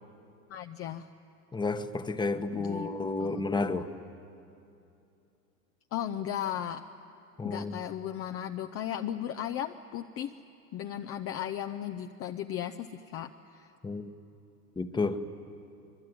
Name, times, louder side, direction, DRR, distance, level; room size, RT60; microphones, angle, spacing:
voice 1, 0.5-1.1 2.5-2.9 3.2-3.5 5.9-6.8 7.4-10.3 10.7-13.7, left 10 dB, 30° left, 7 dB, 0.7 m, -36 dB
voice 2, 1.5-3.9 7.4-7.8 13.8-14.1 14.8-15.2, left 3 dB, 10° left, 9 dB, 1.1 m, -31 dB
25.5 x 21.5 x 9.4 m, 2.6 s
hypercardioid pair, 100°, 46 cm